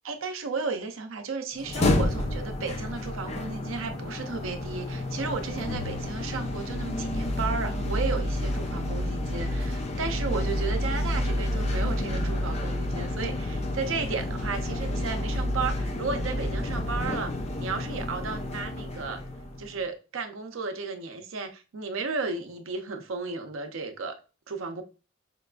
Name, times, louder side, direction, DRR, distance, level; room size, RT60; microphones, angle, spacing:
voice 1, 0.0-17.3 17.6-19.2 19.6-24.1 24.5-24.8, right 4 dB, 80° right, 0.6 m, -34 dB
sound 1, 1.6-19.7, left 1 dB, 30° left, 0.4 m, -30 dB
5.1 x 2.4 x 2.2 m
head